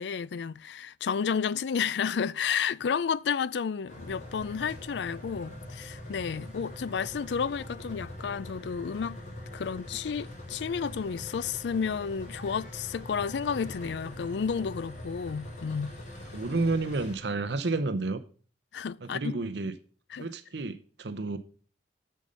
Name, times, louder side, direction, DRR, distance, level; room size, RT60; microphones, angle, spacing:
voice 1, 0.0-9.2 9.5-16.0 18.7-19.3 20.1-20.3, left 6 dB, 75° left, 0.4 m, -31 dB
sound 1, 3.9-17.2, left 1 dB, 45° left, 3.2 m, -43 dB
voice 2, 16.3-18.2 19.0-19.7 20.2-21.4, right 3 dB, 75° right, 0.8 m, -30 dB
9.1 x 6.5 x 5.4 m
head